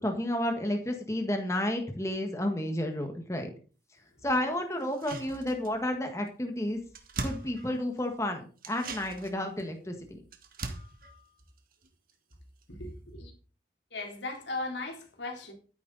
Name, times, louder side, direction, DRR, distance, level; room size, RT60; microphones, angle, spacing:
voice 1, 0.0-3.5 4.2-6.8 7.2-10.0, left 1 dB, 15° left, 1.6 m, -31 dB
sound 1, 4.8-6.0 6.3-6.4 6.6-8.1 8.6-12.3 12.6-12.7, right 2 dB, 50° right, 1.9 m, -41 dB
voice 2, 12.7-13.3 13.9-15.5, left 2 dB, 80° left, 3.5 m, -37 dB
13.0 x 10.0 x 4.1 m
head